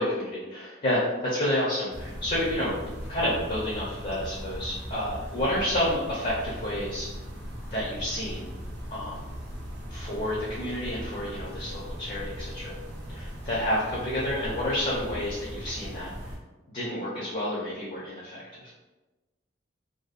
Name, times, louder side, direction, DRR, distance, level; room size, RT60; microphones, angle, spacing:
voice 1, 0.0-2.7 3.1-7.1 7.7-8.5 8.9-9.2 9.9-12.7 13.1-16.1 16.7-18.7, left 1 dB, 40° left, -6 dB, 0.5 m, -30 dB
sound 1, 1.9-16.4, equal, 60° right, 0.7 m, -39 dB
2.6 x 2.2 x 2.4 m, 1.1 s
head